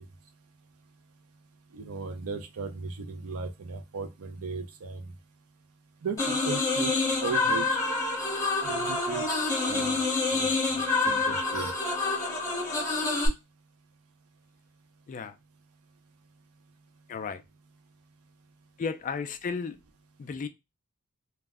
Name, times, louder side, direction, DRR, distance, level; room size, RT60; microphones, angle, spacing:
voice 1, 1.7-5.1 6.0-7.8 8.6-9.2 9.7-10.0 10.3-10.8 11.1-11.9, right 5 dB, 75° right, 0.5 m, -36 dB
sound 1, 6.2-13.3, left 3 dB, 15° left, 0.9 m, -27 dB
voice 2, 17.1-17.4 18.8-19.8 20.2-20.5, left 5 dB, 35° left, 0.3 m, -34 dB
2.3 x 2.0 x 3.4 m
head